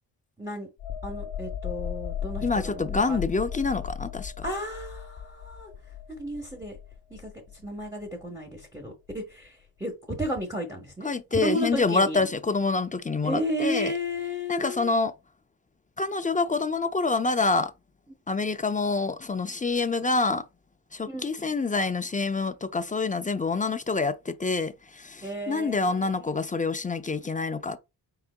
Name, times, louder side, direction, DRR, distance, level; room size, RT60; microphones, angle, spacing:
sound 1, 0.8-8.2 8.6-8.8, left 9 dB, 75° left, 0.7 m, -37 dB
voice 1, 1.0-3.2 4.4-5.7 6.1-6.8 7.1-12.3 13.2-14.9 21.1-21.5 25.2-26.6, equal, 10° right, 1.3 m, -33 dB
voice 2, 2.4-4.5 11.0-13.9 14.5-15.1 16.0-17.7 18.3-20.4 20.9-27.8, left 3 dB, 20° left, 0.4 m, -27 dB
4.7 x 3.6 x 2.2 m
cardioid pair, 85°, 43 cm